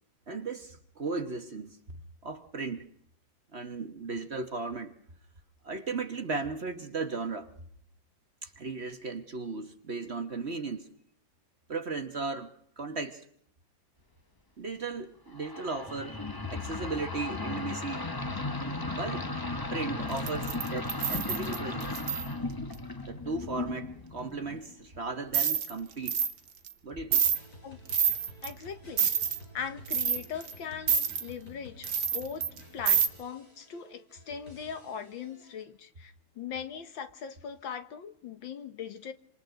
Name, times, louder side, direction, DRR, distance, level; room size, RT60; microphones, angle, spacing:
voice 1, 0.3-1.8 2.2-2.9 3.5-4.9 5.6-7.5 8.4-10.9 11.7-13.3 14.6-16.2 16.5-18.1 18.9-19.3 19.7-21.9 23.1-26.3 26.8-27.3, right 4 dB, 40° right, 1.2 m, -36 dB
sound 1, 15.3-24.7, left 2 dB, 15° left, 0.7 m, -36 dB
sound 2, 20.2-22.3 25.3-25.7 26.1-26.3 26.7-26.8 27.1-27.4 27.9-28.5 29.0-29.4 29.9-30.5 30.9-31.2 31.8-32.6 32.9-33.1, right 8 dB, 85° right, 1.9 m, -27 dB
sound 3, 27.3-35.6, left 1 dB, 50° left, 6.5 m, -51 dB
voice 2, 28.4-29.1 29.5-32.5 32.7-39.1, left 7 dB, 85° left, 2.1 m, -40 dB
27.0 x 26.5 x 3.9 m
omnidirectional pair, 2.0 m